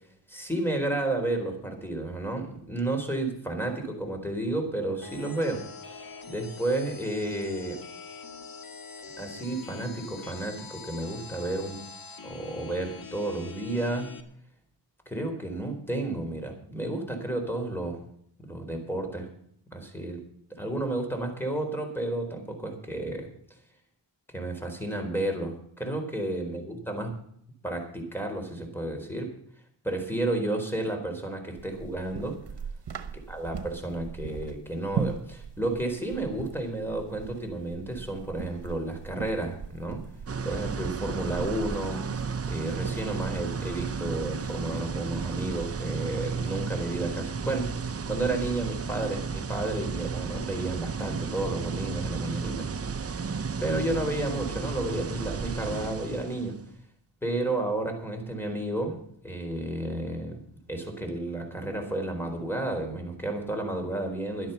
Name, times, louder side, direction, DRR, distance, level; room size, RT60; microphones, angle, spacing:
voice 1, 0.3-5.6 5.9-7.8 9.2-11.8 12.2-14.1 15.1-18.0 18.5-19.3 19.7-20.2 20.6-23.3 24.3-27.1 27.6-29.3 29.8-32.4 33.3-40.0 40.4-42.0 42.5-52.7 53.0-53.2 53.6-56.6 57.2-59.0 59.2-60.4 60.7-64.5, right 2 dB, 5° left, 4 dB, 4.1 m, -31 dB
sound 1, 5.0-14.2, left 5 dB, 55° left, 1.6 m, -44 dB
sound 2, 31.6-45.9, right 6 dB, 70° right, 1.1 m, -40 dB
sound 3, 40.3-56.6, right 5 dB, 35° right, 0.6 m, -33 dB
12.0 x 10.5 x 6.9 m, 0.67 s
wide cardioid pair, 70°, 42 cm